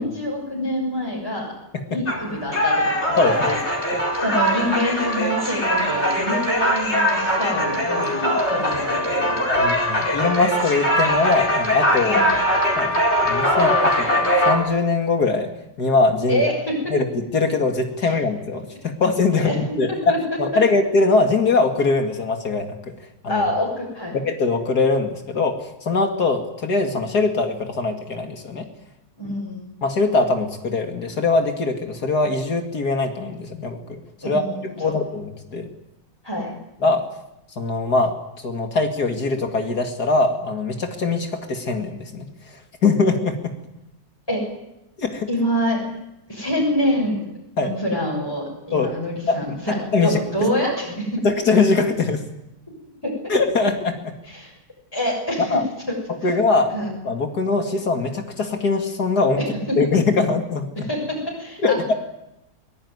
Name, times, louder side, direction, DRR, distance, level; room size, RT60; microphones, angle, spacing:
voice 1, 0.0-1.5 1.9-3.6 4.2-9.7 12.0-12.3 16.3-16.7 18.0-18.1 19.3-19.5 20.1-20.2 23.3-24.2 29.2-29.7 34.2-34.6 34.8-35.0 36.2-36.5 44.3-44.4 45.3-45.8 46.3-47.2 47.6-51.2 53.0-53.1 54.3-54.5 54.9-55.6 55.9-56.0 56.2-56.3 56.7-56.9 59.4-59.5 60.9-61.0 61.4-61.8, equal, 15° left, -3 dB, 6.9 m, -26 dB
sound 1, 2.1-14.6, equal, 40° left, 5.1 m, -21 dB
voice 2, 3.2-3.6 3.9-4.0 9.5-12.2 12.8-15.5 15.8-16.4 16.9-19.5 19.8-23.0 23.2-23.4 24.2-28.7 29.8-34.4 34.8-35.7 36.8-37.1 37.6-43.5 45.0-45.3 47.6-47.8 48.7-48.9 49.3-49.4 49.7-50.2 51.2-52.2 53.3-54.1 55.5-55.6 56.1-56.8 57.0-59.4 59.8-60.9 61.6-61.9, left 3 dB, 75° left, 4 dB, 2.8 m, -22 dB
23.5 x 21.0 x 9.7 m, 0.87 s
omnidirectional pair, 1.7 m